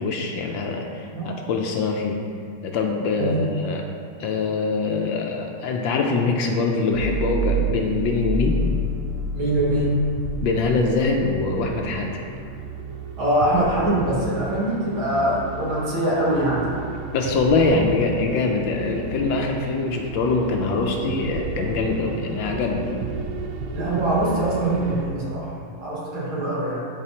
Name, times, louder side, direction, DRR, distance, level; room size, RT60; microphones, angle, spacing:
voice 1, 0.0-2.2 2.6-3.8 4.2-8.6 10.4-12.2 17.1-22.9, left 4 dB, 75° left, 2 dB, 1.2 m, -23 dB
voice 2, 1.1-1.4 3.2-3.5 9.3-10.0 13.2-16.7 23.7-26.9, right 1 dB, 70° right, -8 dB, 2.7 m, -23 dB
sound 1, 6.9-25.0, right 3 dB, 85° right, 1.5 m, -31 dB
12.0 x 4.1 x 2.9 m, 2.3 s
omnidirectional pair, 2.3 m